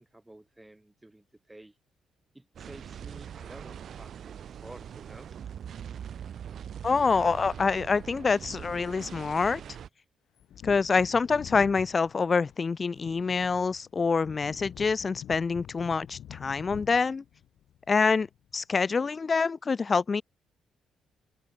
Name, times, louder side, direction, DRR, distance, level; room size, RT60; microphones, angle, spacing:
voice 1, 0.0-1.7 2.3-5.3, right 1 dB, 10° right, 3.0 m, -51 dB
sound 1, 2.5-9.9, right 8 dB, 60° right, 0.5 m, -42 dB
voice 2, 6.8-9.6 10.6-17.2 17.9-18.3 18.5-20.2, left 4 dB, 35° left, 0.7 m, -26 dB
Wind / Thunder, 10.4-18.6 18.9-19.0, left 11 dB, 70° left, 1.0 m, -47 dB
open air
cardioid pair, 90°, 0 cm